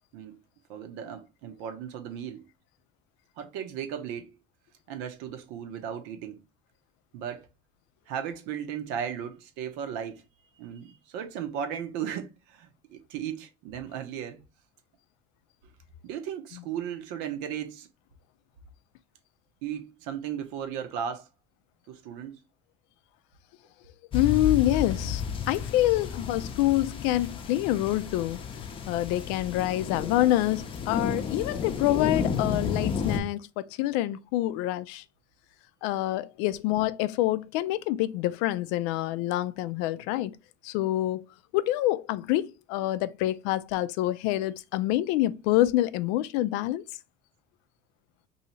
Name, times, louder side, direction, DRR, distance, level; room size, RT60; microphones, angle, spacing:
voice 1, 0.7-2.5 3.4-4.4 4.9-6.4 7.1-7.5 8.1-10.2 10.6-14.4 16.0-17.9 19.6-21.3 21.9-22.4, right 8 dB, 85° right, 0.8 m, -36 dB
voice 2, 24.1-28.4 28.9-35.0 35.8-40.4 40.6-41.2 41.5-46.8, left 15 dB, 90° left, 0.4 m, -26 dB
sound 1, 24.1-33.2, left 6 dB, 30° left, 0.6 m, -32 dB
2.7 x 2.7 x 4.3 m
cardioid pair, 145°, 18 cm